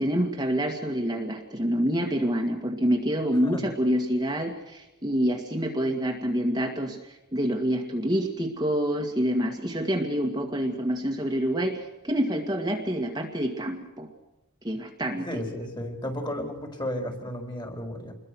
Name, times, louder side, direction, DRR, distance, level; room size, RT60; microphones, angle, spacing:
voice 1, 0.0-7.0 7.3-14.1 14.6-15.3, equal, 20° right, 1 dB, 2.1 m, -27 dB
voice 2, 15.2-18.1, left 1 dB, 20° left, 4 dB, 4.5 m, -33 dB
28.0 x 22.0 x 6.4 m, 0.98 s
head